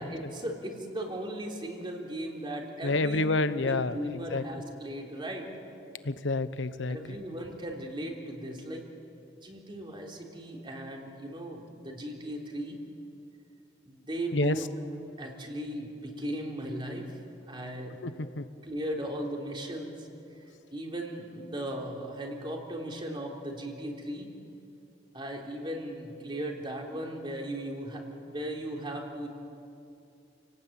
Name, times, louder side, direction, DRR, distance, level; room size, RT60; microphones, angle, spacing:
voice 1, 0.0-3.2 3.6-5.5 6.9-8.8 9.3-12.8 13.8-14.7 15.2-17.2 17.5-18.0 18.6-20.1 20.7-24.3 25.1-29.3, right 1 dB, 25° right, 0 dB, 3.5 m, -37 dB
voice 2, 2.8-4.4 6.0-7.2 14.3-14.5 18.0-18.4, left 2 dB, 75° left, 13 dB, 1.0 m, -29 dB
29.5 x 18.0 x 8.9 m, 2.7 s
head